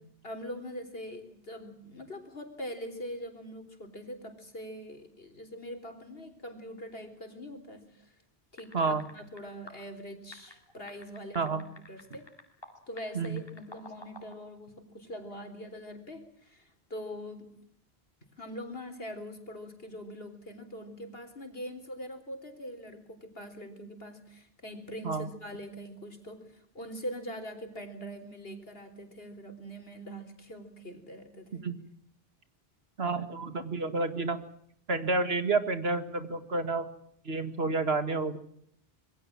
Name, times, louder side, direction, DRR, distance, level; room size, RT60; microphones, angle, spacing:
voice 1, 0.2-8.2 8.5-12.3 12.9-17.5 18.4-31.7, equal, 70° left, 7 dB, 4.1 m, -43 dB
sound 1, 8.6-9.4 9.7-9.8 10.3-12.7 13.0-14.3, left 1 dB, 25° left, 5.0 m, -49 dB
voice 2, 33.0-34.4 34.9-36.9 37.3-38.4, right 3 dB, 80° right, 10 dB, 2.2 m, -30 dB
26.5 x 22.0 x 7.5 m, 0.66 s
omnidirectional pair, 1.0 m